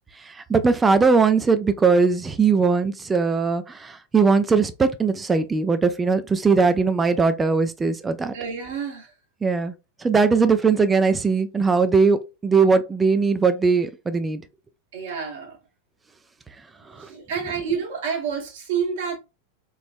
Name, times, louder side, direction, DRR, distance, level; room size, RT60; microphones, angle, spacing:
voice 1, 0.3-8.3 9.4-9.7 10.0-14.4 17.0-17.1, right 4 dB, 15° right, 0.4 m, -20 dB
voice 2, 8.3-9.1 14.9-15.6 17.0-19.2, right 6 dB, 55° right, 1.2 m, -28 dB
3.1 x 3.0 x 2.6 m
figure-of-eight pair, 90°, 0 cm